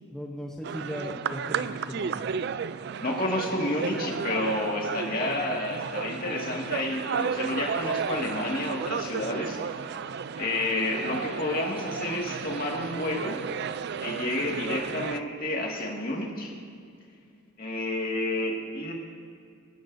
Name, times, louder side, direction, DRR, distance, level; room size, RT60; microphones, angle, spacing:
voice 1, 0.1-2.2, equal, 5° left, -3 dB, 0.8 m, -38 dB
sound 1, 0.6-15.2, right 6 dB, 50° right, 0.3 m, -33 dB
voice 2, 3.0-9.6 10.4-13.4 14.0-16.5 17.6-18.9, left 2 dB, 40° left, -1 dB, 2.0 m, -30 dB
25.0 x 11.5 x 2.7 m, 2.4 s
head